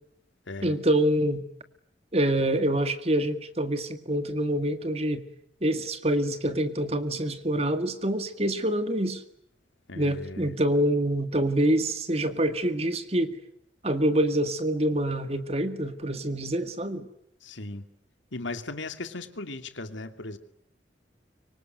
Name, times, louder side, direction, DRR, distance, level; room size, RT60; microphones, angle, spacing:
voice 1, 0.6-1.5 2.1-5.2 5.6-9.2 10.0-13.4 13.8-17.1, right 1 dB, 35° right, 10 dB, 2.0 m, -26 dB
voice 2, 9.9-10.5 17.4-17.8 18.3-20.4, left 2 dB, 85° left, 9 dB, 2.5 m, -37 dB
25.0 x 24.5 x 9.3 m, 0.72 s
head